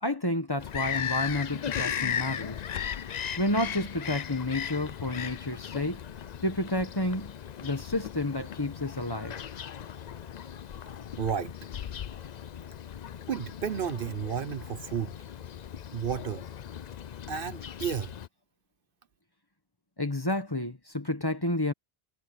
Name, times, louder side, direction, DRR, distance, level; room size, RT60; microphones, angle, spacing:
voice 1, 0.0-2.6 3.4-6.0 6.4-7.3 7.6-9.4 20.0-21.7, left 1 dB, 20° left, 1.4 m, -30 dB
Bird vocalization bird call bird song, 0.6-18.3, left 8 dB, 50° left, 0.6 m, -37 dB
voice 2, 11.2-11.5 13.3-15.1 15.9-16.4 17.3-18.1, right 7 dB, 60° right, 0.9 m, -32 dB
omnidirectional pair, 1.1 m